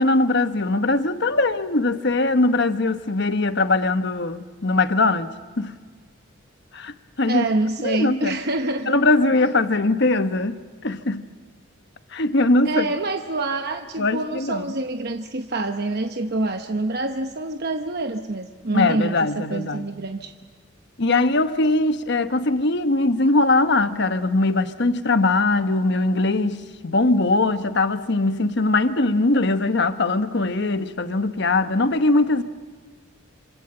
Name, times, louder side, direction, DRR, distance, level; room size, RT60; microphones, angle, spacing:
voice 1, 0.0-5.8 6.7-7.5 7.8-8.4 8.9-11.2 12.1-12.9 14.0-14.7 18.7-19.9 21.0-32.4, left 2 dB, 55° left, 1.2 m, -21 dB
voice 2, 7.3-8.9 12.6-20.3, right 2 dB, 50° right, 1.0 m, -26 dB
27.5 x 26.0 x 7.9 m
head